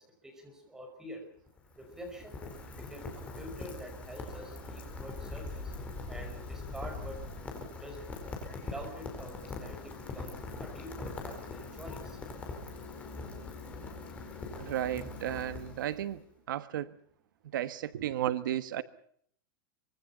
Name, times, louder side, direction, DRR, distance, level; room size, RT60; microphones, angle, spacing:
voice 1, 0.2-1.2 1.8-2.5 2.8-3.1 3.3-5.7 6.1-7.2 7.8-8.1 8.7-10.3 10.6-12.2 15.0-15.1, equal, 5° right, 3 dB, 5.8 m, -46 dB
Rain, 1.4-16.2, left 3 dB, 10° left, 4.6 m, -42 dB
voice 2, 14.6-17.0 17.5-18.8, right 11 dB, 80° right, 12 dB, 1.4 m, -34 dB
25.0 x 23.5 x 5.8 m, 0.64 s
supercardioid pair, 180°, 11 cm